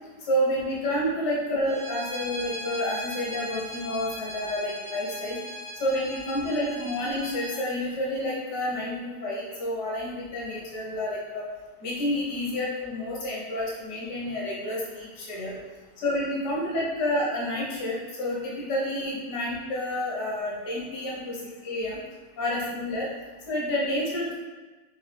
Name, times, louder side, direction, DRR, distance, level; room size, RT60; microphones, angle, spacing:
voice 1, 0.2-5.4 5.8-11.5 11.8-15.6 16.0-22.0 22.4-23.1 23.5-24.3, left 1 dB, 75° left, -5 dB, 1.7 m, -29 dB
Bowed string instrument, 1.6-7.6, equal, 35° right, 0.3 m, -38 dB
3.9 x 3.6 x 3.3 m, 1.2 s
omnidirectional pair, 1.9 m